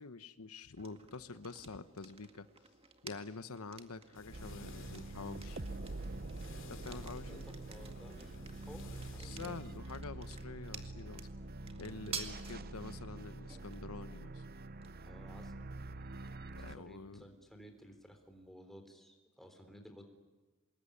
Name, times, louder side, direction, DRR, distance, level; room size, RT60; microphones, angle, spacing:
voice 1, 0.0-2.5 3.0-5.6 6.7-7.5 9.2-11.3 11.8-14.4 16.6-17.2, left 3 dB, 90° left, 12 dB, 1.1 m, -47 dB
sound 1, 0.8-18.5, right 5 dB, 25° right, 1.9 m, -53 dB
sound 2, 4.1-9.8, left 2 dB, 60° left, 3.6 m, -55 dB
sound 3, 4.3-16.8, right 2 dB, 45° right, 0.8 m, -46 dB
voice 2, 7.3-9.6 11.7-12.0 15.0-15.5 16.6-20.0, equal, ahead, 5 dB, 3.8 m, -56 dB
26.0 x 21.0 x 10.0 m, 1.3 s
head